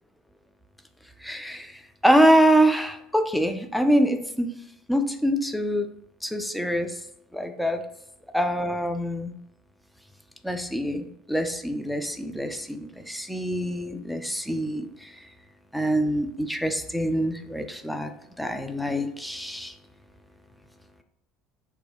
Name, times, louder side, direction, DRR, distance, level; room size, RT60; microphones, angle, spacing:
voice 1, 1.2-4.5 4.9-5.9 6.2-7.0 7.3-7.8 8.3-9.3 10.4-15.1 15.7-18.1 18.4-19.7, equal, ahead, 6 dB, 0.3 m, -25 dB
2.1 x 2.1 x 3.4 m, 0.78 s
figure-of-eight pair, 65°, 0 cm